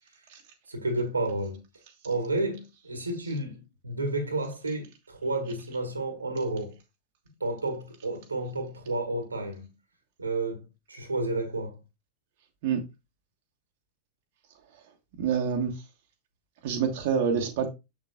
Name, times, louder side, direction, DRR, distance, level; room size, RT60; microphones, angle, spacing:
voice 1, 0.7-1.6 2.0-6.8 7.4-9.7 10.2-11.8, right 2 dB, 80° right, 1.7 m, -31 dB
voice 2, 15.2-15.8 16.6-17.7, right 7 dB, 50° right, 1.4 m, -27 dB
7.3 x 7.0 x 2.4 m
figure-of-eight pair, 90°, 0 cm